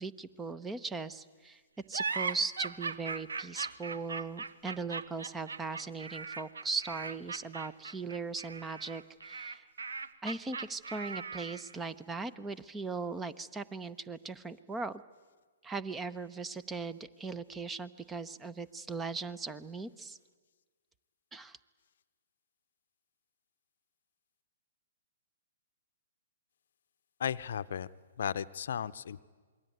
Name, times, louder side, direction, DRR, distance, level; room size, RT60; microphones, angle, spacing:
voice 1, 0.0-1.6 1.9-9.6 10.2-15.0 15.6-20.2 21.3-21.6, right 4 dB, 10° right, 15 dB, 0.9 m, -39 dB
sound 1, 1.9-11.8, right 4 dB, 75° right, 1.2 m, -39 dB
voice 2, 27.2-27.9 28.2-29.2, left 8 dB, 60° left, 15 dB, 0.7 m, -35 dB
27.5 x 21.5 x 9.4 m, 1.5 s
figure-of-eight pair, 120°, 0 cm